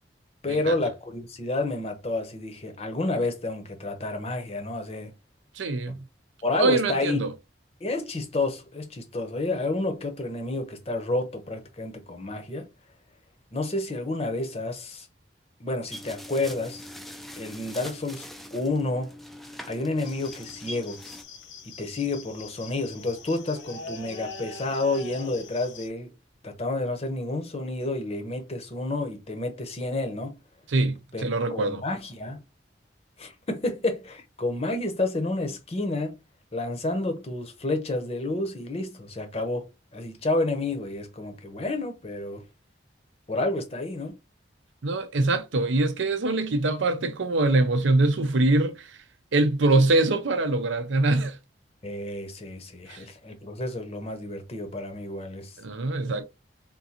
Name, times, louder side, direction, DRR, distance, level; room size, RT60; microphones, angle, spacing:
voice 1, 0.4-5.1 5.9-6.0 6.4-7.2 7.8-12.7 13.5-15.1 15.6-16.9 17.4-19.1 19.7-21.0 21.6-26.1 26.4-30.3 31.1-31.2 31.5-32.4 33.2-36.2 36.5-42.4 43.3-44.1 51.8-55.6, left 2 dB, 30° left, 0.7 m, -30 dB
voice 2, 5.6-6.0 6.6-7.3 30.7-31.8 44.8-49.0 49.3-51.4 52.9-53.0 55.6-56.2, right 2 dB, 80° right, 0.6 m, -23 dB
sound 1, 15.9-21.2, left 1 dB, ahead, 0.3 m, -42 dB
sound 2, 20.0-25.9, left 4 dB, 75° left, 0.9 m, -43 dB
3.7 x 2.5 x 2.8 m
head